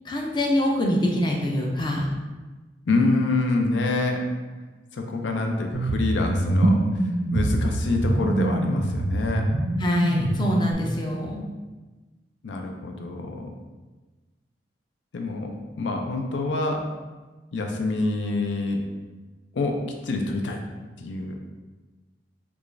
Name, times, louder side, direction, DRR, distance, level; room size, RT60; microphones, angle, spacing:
voice 1, 0.0-2.1 9.8-11.5, left 1 dB, 25° left, 0 dB, 0.4 m, -24 dB
voice 2, 2.9-4.2 4.9-6.8 7.3-9.4 12.4-13.5 15.1-16.8 17.5-18.8 19.5-19.8 20.0-20.6 21.0-21.3, left 2 dB, 90° left, 3 dB, 0.5 m, -26 dB
sound 1, 5.7-10.7, right 1 dB, 40° right, 0.3 m, -24 dB
4.7 x 2.4 x 2.5 m, 1.2 s
head